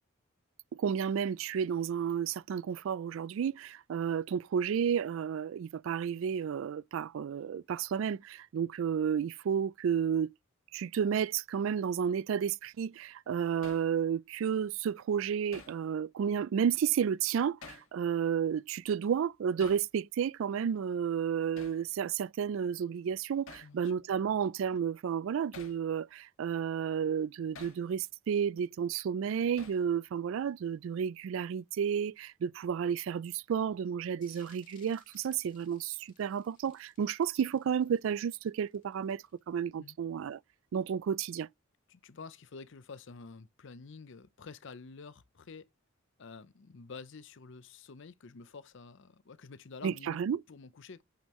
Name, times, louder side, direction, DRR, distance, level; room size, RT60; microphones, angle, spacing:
voice 1, 0.7-10.3 10.7-40.4 40.7-41.5 49.8-50.4, right 7 dB, 65° right, 0.3 m, -32 dB
Hammer, 13.6-13.9 15.5-15.8 17.6-17.9 19.6-19.9 21.6-21.8 23.5-23.7 25.5-25.8 27.5-27.8 29.6-29.9, left 4 dB, 85° left, 1.8 m, -50 dB
voice 2, 23.6-23.9 39.8-40.0 41.9-45.7 46.2-50.2 50.5-51.0, left 4 dB, 60° left, 0.6 m, -49 dB
tiny sizzle, 34.2-39.5, left 6 dB, 40° left, 2.2 m, -64 dB
8.6 x 5.3 x 3.1 m
head